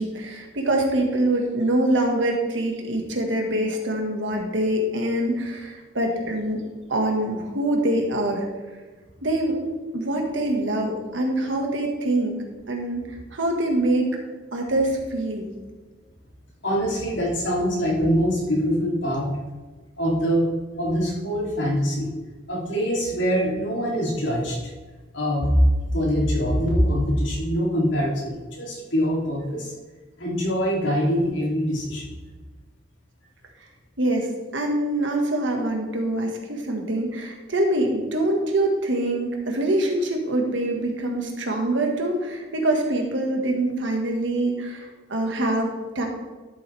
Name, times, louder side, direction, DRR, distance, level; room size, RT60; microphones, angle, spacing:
voice 1, 0.0-6.6 6.9-8.4 9.2-9.6 9.9-12.4 12.7-14.1 14.5-15.5 34.0-34.3 34.5-46.1, right 1 dB, 90° right, 2 dB, 1.8 m, -24 dB
voice 2, 16.6-19.3 20.0-20.5 20.8-22.1 22.5-24.6 25.1-29.7 30.2-32.1, equal, 90° left, -4 dB, 3.1 m, -23 dB
12.5 x 7.3 x 3.5 m, 1.3 s
head